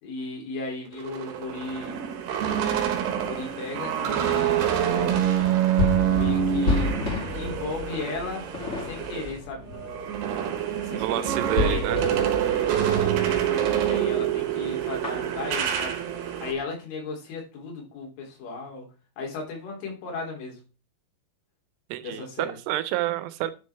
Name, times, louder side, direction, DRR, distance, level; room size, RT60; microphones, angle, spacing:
voice 1, 0.0-2.0 3.1-4.5 5.9-6.9 7.3-8.5 8.9-10.1 10.7-11.8 12.8-16.0 16.4-18.9 19.2-20.6 22.0-22.6, left 3 dB, 80° left, 0 dB, 5.5 m, -36 dB
sound 1, 0.9-9.3 9.7-16.5, right 9 dB, 70° right, 3.2 m, -26 dB
sound 2, 5.0-13.9 14.2-14.4 14.7-16.6, left 3 dB, 20° left, 2.2 m, -32 dB
voice 2, 10.9-12.0 21.9-23.5, right 14 dB, 85° right, 14 dB, 3.3 m, -28 dB
11.0 x 6.4 x 3.4 m, 0.32 s
omnidirectional pair, 5.5 m